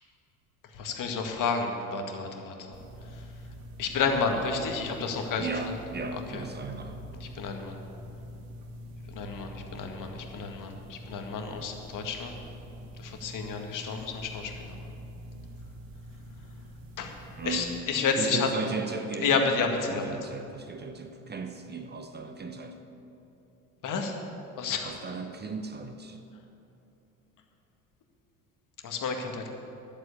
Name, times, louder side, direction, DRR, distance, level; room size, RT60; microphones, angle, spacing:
voice 1, 0.8-2.5 3.8-5.5 6.1-6.4 7.2-7.8 9.1-12.4 13.0-14.8 17.0-18.5 19.2-20.1 23.8-24.2 24.6-24.9 28.8-29.5, left 5 dB, 45° left, 4 dB, 1.9 m, -30 dB
sound 1, 2.7-17.8, equal, 55° right, 1.7 m, -45 dB
voice 2, 5.4-7.0 17.3-17.9 18.2-19.3 19.9-22.8 24.8-26.2, right 4 dB, 25° right, 6 dB, 0.9 m, -36 dB
11.5 x 7.9 x 8.5 m, 2.9 s
hypercardioid pair, 70°, 42 cm